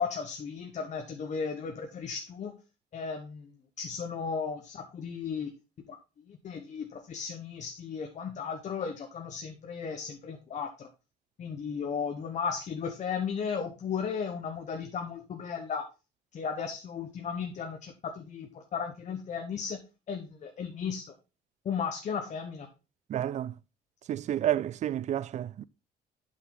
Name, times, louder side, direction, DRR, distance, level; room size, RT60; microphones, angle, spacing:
voice 1, 0.0-2.6 2.9-3.5 3.8-5.5 5.9-6.0 6.3-10.9 11.4-15.9 16.3-19.8 20.1-21.1 21.6-22.7, left 6 dB, 45° left, 1.0 m, -35 dB
voice 2, 23.1-23.6 24.1-25.6, right 11 dB, 45° right, 0.4 m, -30 dB
8.3 x 5.7 x 3.8 m
cardioid pair, 110°, 17 cm